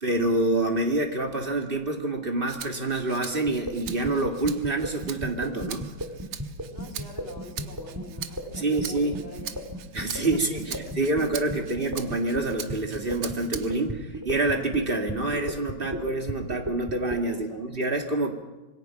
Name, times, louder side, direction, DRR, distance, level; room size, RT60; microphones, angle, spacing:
voice 1, 0.0-5.9 8.6-9.1 9.9-10.6 11.0-18.3, right 2 dB, 25° right, 3 dB, 2.2 m, -27 dB
Rattle (instrument), 2.5-13.9 14.4-15.6, right 10 dB, 90° right, 1.9 m, -42 dB
sound 1, 3.5-17.2, equal, 10° right, 2.2 m, -34 dB
voice 2, 6.7-9.8 10.2-10.4 10.9-11.0 11.4-11.7 17.3-17.6, left 3 dB, 65° left, -1 dB, 4.1 m, -44 dB
26.0 x 22.5 x 5.9 m, 1.1 s
omnidirectional pair, 2.4 m